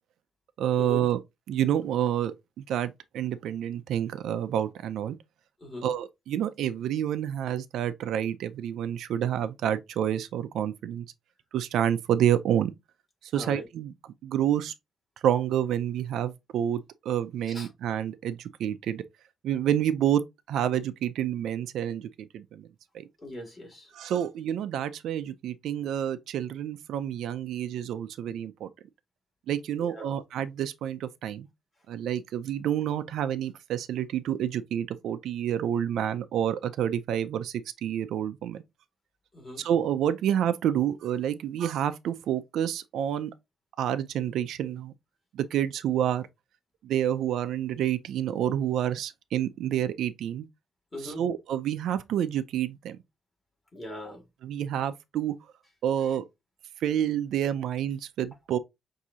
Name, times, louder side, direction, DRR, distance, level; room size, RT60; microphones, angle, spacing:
voice 1, 0.6-1.2 1.5-5.2 5.8-11.1 11.5-12.7 13.3-13.9 14.2-14.7 15.2-19.0 19.4-20.2 20.5-22.7 22.9-23.1 23.9-28.7 29.5-31.5 31.9-38.6 39.6-43.3 43.8-44.9 45.3-46.3 46.8-50.5 51.0-53.0 54.4-55.3 55.8-56.2 56.8-58.6, right 10 dB, 75° right, 0.4 m, -28 dB
voice 2, 23.2-23.9 29.8-30.1 39.3-39.6 50.9-51.2 53.7-54.2, left 1 dB, 15° left, 2.2 m, -40 dB
6.0 x 2.7 x 2.7 m
cardioid pair, 150°, 0 cm